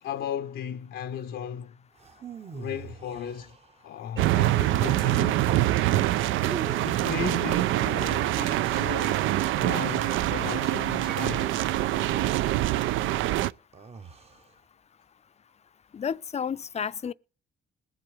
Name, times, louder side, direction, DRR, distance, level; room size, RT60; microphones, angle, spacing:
voice 1, 0.0-1.8 2.5-3.6 3.8-5.4 6.8-11.5, left 9 dB, 70° left, 0.6 m, -36 dB
sound 1, 2.0-4.0 5.2-5.7 6.4-7.1 8.1-9.5 10.9-12.2 13.7-14.5, right 6 dB, 30° right, 0.9 m, -42 dB
sound 2, 4.2-12.4, right 5 dB, 55° right, 2.4 m, -44 dB
sound 3, 4.2-13.5, right 15 dB, 85° right, 0.4 m, -25 dB
voice 2, 15.9-17.1, left 7 dB, 35° left, 0.5 m, -31 dB
21.0 x 7.6 x 3.2 m
cardioid pair, 90°, 20 cm